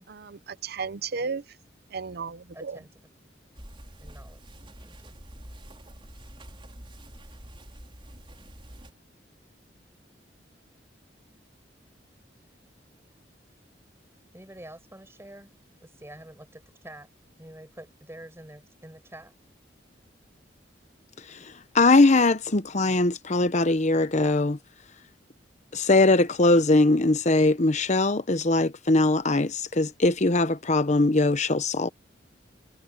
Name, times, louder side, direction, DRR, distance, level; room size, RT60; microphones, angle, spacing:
voice 1, 0.1-1.4 1.9-2.8, right 5 dB, 60° right, 0.7 m, -34 dB
voice 2, 2.5-2.9 4.0-4.4 4.8-5.2 14.3-15.5 15.8-17.1 17.4-19.3, right 1 dB, 15° right, 5.5 m, -47 dB
sound 1, 3.5-8.9, right 1 dB, 30° right, 4.5 m, -46 dB
voice 3, 21.7-24.6 25.7-31.9, left 2 dB, 40° left, 1.0 m, -21 dB
head